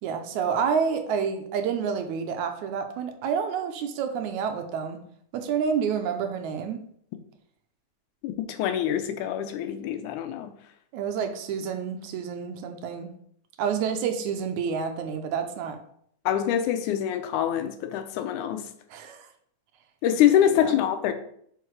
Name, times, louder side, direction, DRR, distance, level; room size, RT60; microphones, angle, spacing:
voice 1, 0.0-5.0 5.3-6.8 10.9-13.1 13.6-15.8 18.9-19.3 20.5-20.8, right 6 dB, 80° right, 6 dB, 2.0 m, -29 dB
voice 2, 8.2-10.5 16.3-18.7 20.0-21.1, left 10 dB, 80° left, 8 dB, 2.1 m, -25 dB
6.7 x 4.8 x 4.6 m, 0.66 s
omnidirectional pair, 3.5 m